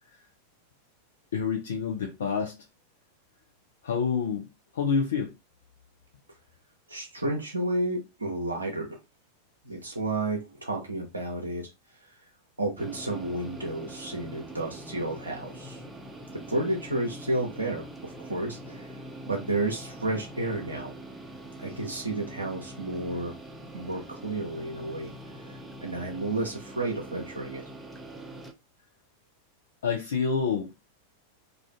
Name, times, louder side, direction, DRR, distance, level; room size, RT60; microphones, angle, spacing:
voice 1, 1.3-2.5 3.8-4.5 4.7-5.3 29.8-30.7, left 6 dB, 65° left, 0.5 m, -27 dB
voice 2, 6.9-9.0 9.6-12.2 12.6-15.8 16.3-19.0 19.2-20.9 21.6-23.3 23.7-27.6, right 2 dB, 80° right, 0.5 m, -32 dB
sound 1, 12.8-28.5, right 1 dB, 5° right, 0.5 m, -43 dB
2.4 x 2.4 x 3.2 m
figure-of-eight pair, 90°, 0 cm